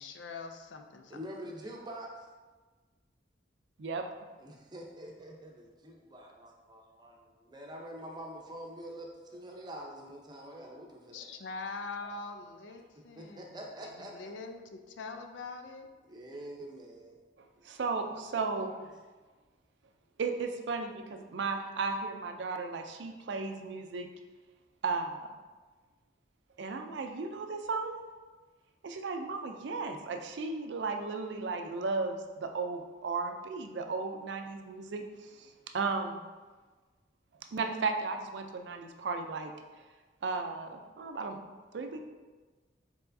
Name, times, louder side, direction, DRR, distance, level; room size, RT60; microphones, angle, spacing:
voice 1, 0.0-1.2 11.1-15.9, left 4 dB, 85° left, 6 dB, 0.4 m, -43 dB
voice 2, 1.1-2.3 4.4-11.3 12.0-12.1 13.2-14.1 16.0-17.2 18.3-18.8, right 1 dB, 25° right, -1 dB, 0.6 m, -46 dB
voice 3, 17.4-18.7 20.2-24.1 24.8-25.3 26.6-28.0 28.8-36.2 37.5-39.5 40.2-41.4 41.7-42.0, right 4 dB, 70° right, 5 dB, 0.4 m, -35 dB
4.5 x 4.2 x 2.6 m, 1.3 s
head